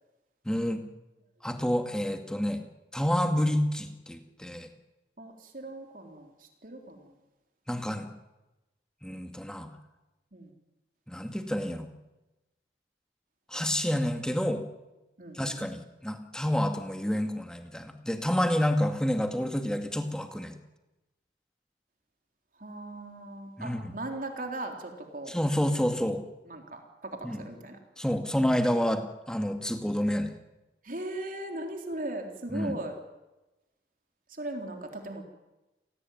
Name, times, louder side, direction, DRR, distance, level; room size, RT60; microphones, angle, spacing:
voice 1, 0.5-0.8 1.4-2.6 2.9-4.7 7.7-8.1 9.0-9.7 11.1-11.9 13.5-14.6 15.3-20.6 23.6-23.9 25.3-26.2 27.2-27.4 28.0-30.3 32.5-32.7, equal, 5° left, 6 dB, 2.2 m, -29 dB
voice 2, 5.2-7.1 10.3-10.5 15.2-15.6 22.6-25.4 26.5-27.8 30.8-32.9 34.3-35.2, right 2 dB, 50° right, 4 dB, 3.8 m, -38 dB
29.5 x 18.5 x 9.4 m, 1.1 s
head